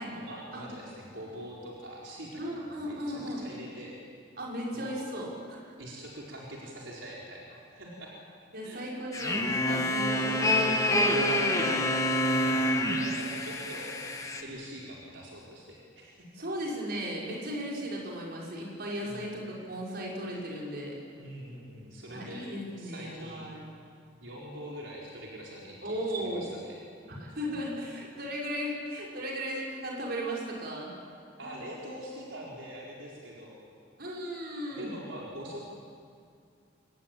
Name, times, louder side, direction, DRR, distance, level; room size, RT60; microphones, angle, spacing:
voice 1, 0.1-3.9 4.7-5.1 5.8-8.2 8.6-8.8 10.3-10.9 12.3-13.9 14.4-16.3 19.0-19.3 21.1-22.5 22.8-23.5 24.2-26.8 31.4-33.6 34.7-35.7, right 1 dB, 80° right, -4 dB, 4.5 m, -44 dB
voice 2, 2.4-3.4 4.4-5.7 8.5-11.8 16.3-21.0 22.1-23.6 25.8-26.5 27.2-30.9 31.4-31.5 34.0-34.9, equal, 55° right, -3 dB, 6.2 m, -36 dB
sound 1, 9.1-14.4, left 1 dB, 15° left, 1.9 m, -27 dB
24.5 x 20.5 x 8.9 m, 2.3 s
head